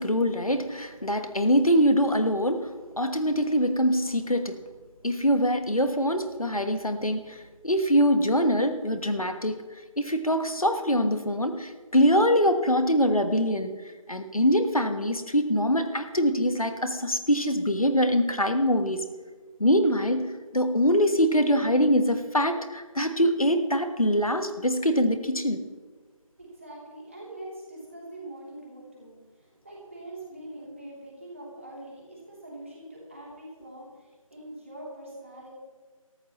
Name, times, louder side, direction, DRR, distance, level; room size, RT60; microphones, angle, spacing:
voice 1, 0.0-4.6 5.0-9.6 10.0-13.8 14.1-19.0 19.6-25.6, equal, 85° left, 8 dB, 1.5 m, -24 dB
voice 2, 26.4-35.5, right 1 dB, 25° right, -5 dB, 3.2 m, -43 dB
19.0 x 14.0 x 3.1 m, 1.4 s
figure-of-eight pair, 170°, 18 cm